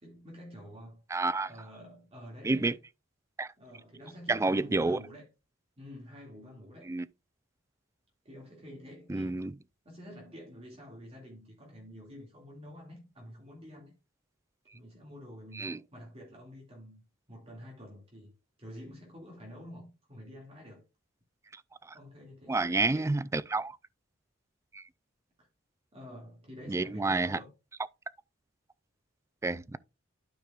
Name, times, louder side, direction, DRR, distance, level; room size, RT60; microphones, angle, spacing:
voice 1, 0.0-1.0 1.4-2.8 3.6-5.3 5.8-7.0 8.2-9.4 9.8-14.0 14.7-17.0 17.3-20.8 21.9-23.1 25.4-25.5 25.9-27.5, equal, 30° right, 2.3 m, -48 dB
voice 2, 1.1-1.5 2.4-2.8 3.4-3.5 4.3-5.0 6.9-7.0 9.1-9.5 15.6-15.8 22.5-23.8 24.7-24.8 26.7-27.4 29.4-29.8, right 3 dB, 15° right, 0.3 m, -29 dB
12.5 x 4.9 x 2.4 m
head